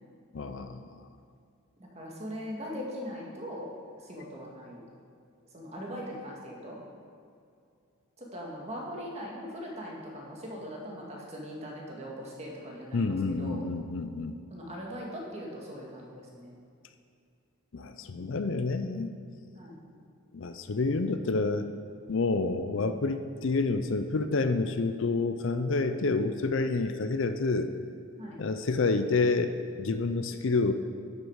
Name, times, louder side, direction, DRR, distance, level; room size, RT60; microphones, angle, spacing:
voice 1, 0.3-1.1 12.9-14.4 17.7-19.1 20.3-21.7 22.1-27.7 28.4-30.7, left 3 dB, 55° left, 9 dB, 0.5 m, -28 dB
voice 2, 1.8-3.7 4.0-4.8 5.5-6.8 8.2-13.6 14.5-16.5 18.1-18.4 19.5-19.8 28.2-28.4, equal, 30° right, -2 dB, 1.9 m, -40 dB
12.0 x 8.2 x 4.7 m, 2.4 s
head